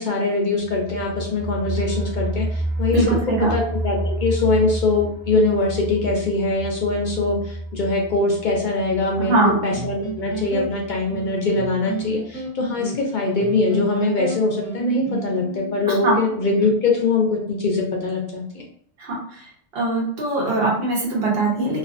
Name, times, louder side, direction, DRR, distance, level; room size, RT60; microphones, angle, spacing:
voice 1, 0.0-3.2 3.5-18.6, left 3 dB, 60° left, 0 dB, 0.5 m, -22 dB
sound 1, 0.6-11.3 11.6-11.7 12.0-12.1, right 1 dB, 30° right, 1.2 m, -30 dB
voice 2, 2.9-3.5 9.2-9.5 15.9-16.2 19.0-19.4 19.7-21.8, right 2 dB, 60° right, -3 dB, 1.0 m, -21 dB
sound 2, 9.7-16.7, right 5 dB, 5° left, 0.5 m, -32 dB
2.4 x 2.4 x 2.4 m, 0.64 s
omnidirectional pair, 1.2 m